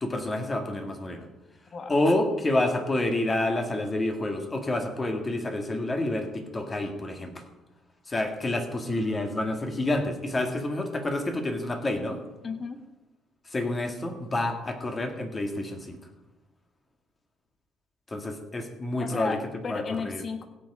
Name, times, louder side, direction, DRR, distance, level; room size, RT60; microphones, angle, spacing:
voice 1, 0.0-1.3 1.9-7.4 8.1-12.2 13.5-16.0 18.1-19.4 19.7-20.2, left 1 dB, 20° left, 4 dB, 2.0 m, -28 dB
voice 2, 12.4-12.8 19.0-20.5, left 5 dB, 35° left, 7 dB, 1.5 m, -33 dB
16.0 x 8.5 x 4.9 m, 1.1 s
cardioid pair, 120°, 0 cm